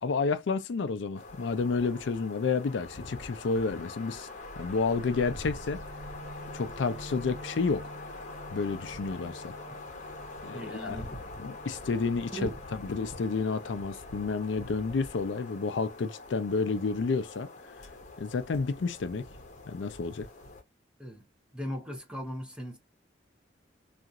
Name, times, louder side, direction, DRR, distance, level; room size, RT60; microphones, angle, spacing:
voice 1, 0.0-4.3 4.6-5.8 6.5-7.8 8.5-9.5 10.4-11.0 11.4-12.5 12.9-17.5 18.2-19.3 19.7-20.3, left 4 dB, 75° left, 0.4 m, -30 dB
sound 1, 1.1-20.6, left 2 dB, 40° left, 0.8 m, -44 dB
sound 2, 4.4-15.8, right 1 dB, 85° right, 0.6 m, -49 dB
voice 2, 10.5-11.3 12.3-12.6 21.0-21.2 21.5-22.8, equal, 5° right, 0.7 m, -38 dB
2.8 x 2.4 x 2.3 m
head